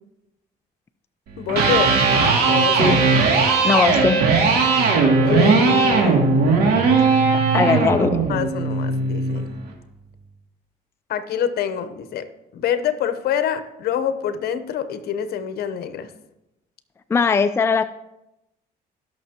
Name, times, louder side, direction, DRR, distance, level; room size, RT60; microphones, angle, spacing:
voice 1, 1.4-2.0 2.5-3.0 5.2-6.3 8.3-9.6 11.1-12.3 12.5-16.1, left 9 dB, 65° left, 11 dB, 0.9 m, -26 dB
Electric guitar, 1.4-9.5, right 4 dB, 75° right, 2.4 m, -18 dB
voice 2, 3.6-4.2 7.5-8.2 17.1-17.8, left 5 dB, 15° left, 9 dB, 0.4 m, -19 dB
18.5 x 6.2 x 2.9 m, 0.90 s
cardioid pair, 110°, 17 cm